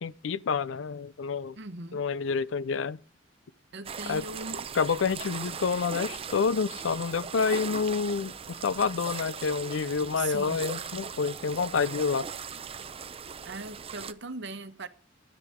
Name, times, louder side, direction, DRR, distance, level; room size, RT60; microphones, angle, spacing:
voice 1, 0.0-1.6 1.9-3.0 4.1-4.3 4.7-12.3, left 5 dB, 75° left, 0.5 m, -28 dB
voice 2, 1.6-2.1 3.7-4.6 10.2-10.6 13.4-14.9, right 3 dB, 65° right, 1.0 m, -39 dB
sound 1, 3.8-14.1, right 6 dB, 30° right, 0.6 m, -39 dB
13.0 x 9.8 x 3.6 m
head